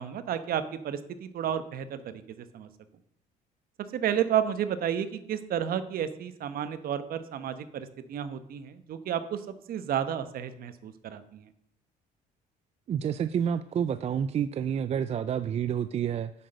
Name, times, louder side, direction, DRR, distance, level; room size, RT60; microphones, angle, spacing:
voice 1, 0.0-2.7 3.9-11.5, right 9 dB, 60° right, 11 dB, 1.0 m, -32 dB
voice 2, 12.9-16.3, right 8 dB, 40° right, 13 dB, 0.4 m, -29 dB
9.3 x 6.1 x 6.5 m, 0.72 s
cardioid pair, 110°, 17 cm